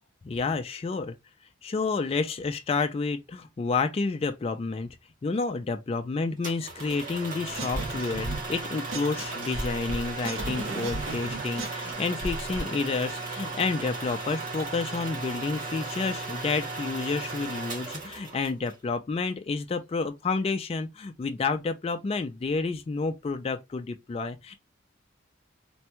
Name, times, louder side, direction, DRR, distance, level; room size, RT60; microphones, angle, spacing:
voice 1, 0.3-1.1 1.6-4.9 5.2-24.5, left 4 dB, 30° left, 0.3 m, -30 dB
sound 1, 6.4-18.7, right 3 dB, 40° right, 1.3 m, -36 dB
sound 2, 7.6-8.6 8.9-12.6, right 1 dB, 75° right, 0.9 m, -34 dB
3.3 x 2.2 x 2.9 m
head